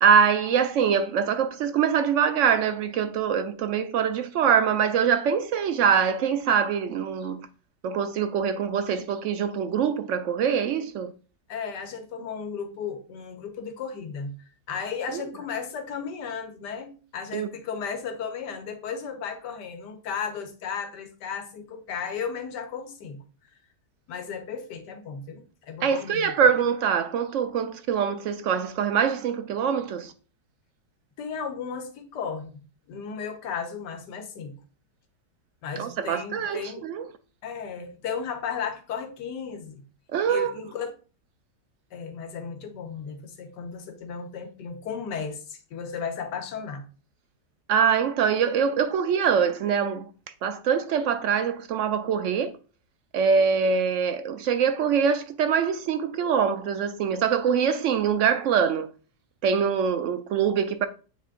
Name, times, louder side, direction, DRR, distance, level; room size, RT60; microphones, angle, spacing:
voice 1, 0.0-7.5 7.8-11.1 15.1-15.3 17.3-17.5 25.8-30.1 35.8-37.1 40.1-40.5 47.7-50.1 50.4-52.5 53.1-58.9 59.4-60.9, right 7 dB, 80° right, 0.6 m, -24 dB
voice 2, 11.5-14.3 14.7-23.2 24.1-26.3 31.2-32.6 32.9-34.5 35.6-36.8 37.4-39.8 40.3-40.9 41.9-46.8, left 6 dB, 80° left, 1.5 m, -35 dB
8.0 x 3.2 x 3.7 m
omnidirectional pair, 1.8 m